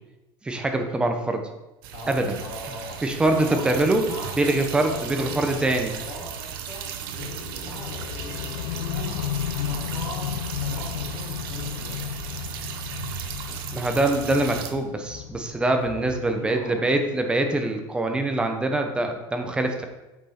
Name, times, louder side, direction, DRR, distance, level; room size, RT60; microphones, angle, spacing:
voice 1, 0.4-1.5 2.1-2.4 3.0-4.0 4.4-6.0 13.7-19.8, right 2 dB, 10° right, 5 dB, 0.7 m, -24 dB
sound 1, 1.8-14.7, right 8 dB, 90° right, 1.0 m, -36 dB
voice 2, 2.4-3.0 3.4-4.3 4.7-12.0 15.8-16.8, left 1 dB, 45° left, -4 dB, 3.2 m, -40 dB
sound 2, 7.2-17.3, left 10 dB, 70° left, 0.4 m, -34 dB
sound 3, 14.3-17.3, left 4 dB, 30° left, 3.1 m, -50 dB
8.4 x 5.9 x 4.3 m, 1.0 s
cardioid pair, 175°, 12 cm